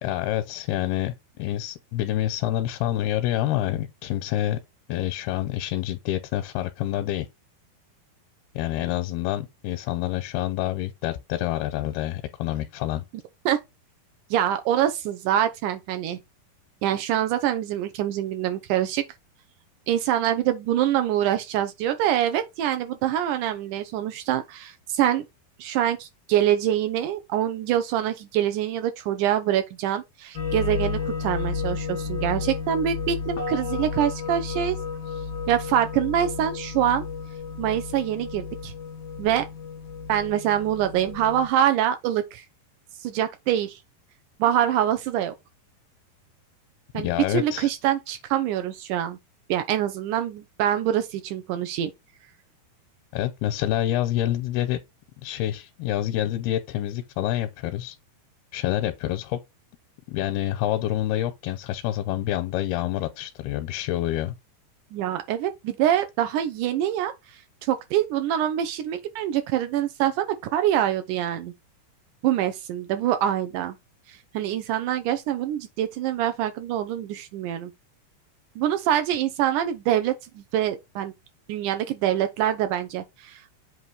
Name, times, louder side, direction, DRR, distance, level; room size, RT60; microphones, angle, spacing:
voice 1, 0.0-4.6 4.9-7.3 8.6-13.0 46.9-47.7 53.1-54.8 55.2-58.0 58.5-59.4 60.1-64.3, left 13 dB, 85° left, 2.6 m, -27 dB
voice 2, 14.3-16.2 16.8-19.0 19.9-25.3 25.6-34.8 35.5-37.1 37.6-38.7 39.2-39.5 40.1-42.5 43.0-43.8 44.4-45.3 46.9-49.2 49.5-51.9 64.9-71.5 72.2-73.8 74.1-77.7 78.6-81.1 81.5-83.4, right 11 dB, 85° right, 1.8 m, -25 dB
sound 1, 30.3-41.5, left 5 dB, 60° left, 1.0 m, -32 dB
8.1 x 2.9 x 5.4 m
omnidirectional pair, 4.4 m